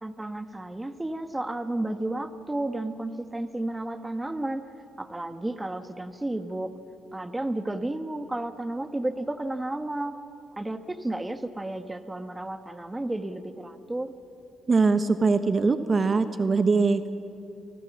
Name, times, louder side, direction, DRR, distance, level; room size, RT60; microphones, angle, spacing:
voice 1, 0.0-4.6 5.0-6.7 7.1-10.2 10.6-14.1, right 1 dB, 15° right, 10 dB, 1.3 m, -32 dB
voice 2, 14.7-17.1, right 4 dB, 35° right, 10 dB, 1.2 m, -22 dB
29.5 x 20.0 x 7.4 m, 2.7 s
cardioid pair, 90°, 0 cm